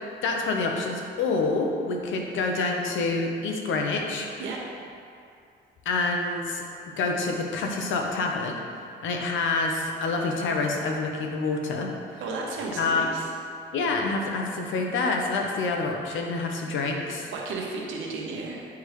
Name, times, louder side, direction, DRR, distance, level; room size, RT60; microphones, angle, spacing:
voice 1, 0.2-4.3 5.8-6.6 7.0-8.6 9.0-12.2 12.8-13.1 13.7-17.3, left 3 dB, 75° left, 1 dB, 0.9 m, -27 dB
voice 2, 12.2-13.3 17.3-18.7, right 3 dB, 85° right, -2 dB, 1.1 m, -33 dB
9.3 x 3.5 x 3.2 m, 2.4 s
cardioid pair, 90°, 20 cm